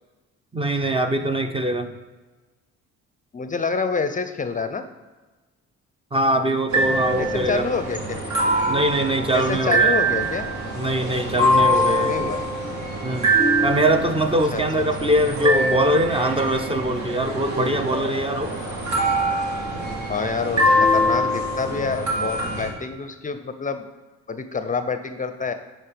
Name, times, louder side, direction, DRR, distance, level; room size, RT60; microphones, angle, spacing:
voice 1, 0.5-1.9 6.1-7.7 8.7-10.0 10.8-12.2 13.0-13.3 13.6-18.5, right 1 dB, 20° right, 7 dB, 0.5 m, -22 dB
voice 2, 3.3-4.8 7.2-8.3 9.3-10.5 11.9-12.4 14.5-14.6 15.0-15.1 20.1-23.8 24.3-25.5, left 4 dB, 25° left, 9 dB, 0.5 m, -27 dB
sound 1, 6.7-22.7, right 1 dB, 70° right, 1.8 m, -23 dB
10.0 x 4.5 x 3.4 m, 1.3 s
cardioid pair, 90°, 30 cm